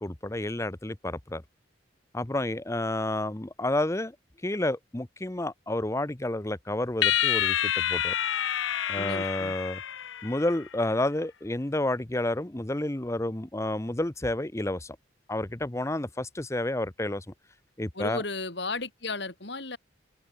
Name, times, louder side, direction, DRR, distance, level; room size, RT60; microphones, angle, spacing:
voice 1, 0.0-1.4 2.1-4.2 4.4-8.1 8.9-9.8 10.2-15.0 15.3-17.2 17.8-18.2, left 1 dB, 15° left, 0.8 m, -30 dB
sound 1, 7.0-10.6, left 10 dB, 85° left, 0.8 m, -28 dB
voice 2, 8.9-9.6 17.9-19.8, left 3 dB, 65° left, 4.2 m, -34 dB
open air
head